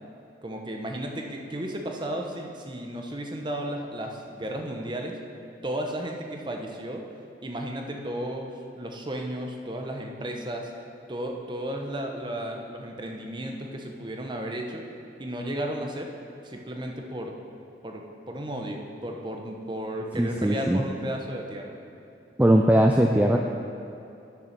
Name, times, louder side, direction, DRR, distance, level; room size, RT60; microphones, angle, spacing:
voice 1, 0.4-5.2 5.6-7.0 7.4-10.7 11.1-14.8 15.2-16.1 16.4-17.3 17.8-21.8, right 1 dB, 25° right, 2 dB, 0.9 m, -34 dB
voice 2, 20.2-20.8 22.4-23.4, right 1 dB, 10° right, 2 dB, 0.3 m, -20 dB
9.3 x 6.6 x 6.0 m, 2.7 s
head